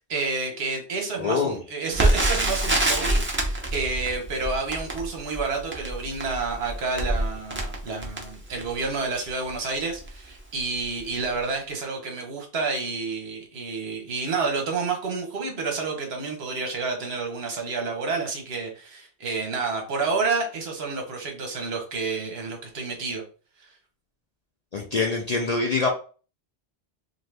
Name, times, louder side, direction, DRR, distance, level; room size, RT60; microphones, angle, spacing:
voice 1, 0.1-23.2, right 4 dB, 65° right, 2 dB, 1.1 m, -29 dB
voice 2, 1.2-1.6 24.7-25.9, left 4 dB, 55° left, 0 dB, 0.4 m, -24 dB
Crackle, 1.9-8.9 9.5-9.6 9.9-10.1 10.7-11.0 11.2-11.3, right 1 dB, 20° right, 0.4 m, -26 dB
2.7 x 2.5 x 3.2 m, 0.38 s
omnidirectional pair, 1.1 m